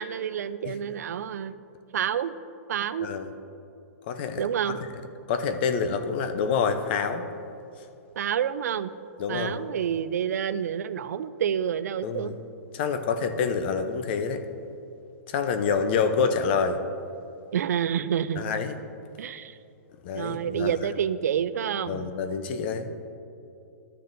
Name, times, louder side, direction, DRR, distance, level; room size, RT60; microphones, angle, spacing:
voice 1, 0.0-1.6 1.9-2.3 2.7-3.1 4.4-4.8 8.2-8.9 9.3-12.3 17.5-18.5 19.2-19.6 20.1-22.1, right 9 dB, 80° right, 14 dB, 0.4 m, -28 dB
voice 2, 3.0-3.3 4.1-4.4 5.3-7.2 9.2-9.6 12.0-12.4 12.7-14.4 15.3-16.8 18.4-18.8 20.0-20.8 21.9-22.9, left 5 dB, 40° left, 9 dB, 0.6 m, -27 dB
13.5 x 6.6 x 2.6 m, 2.7 s
hypercardioid pair, 160°, 9 cm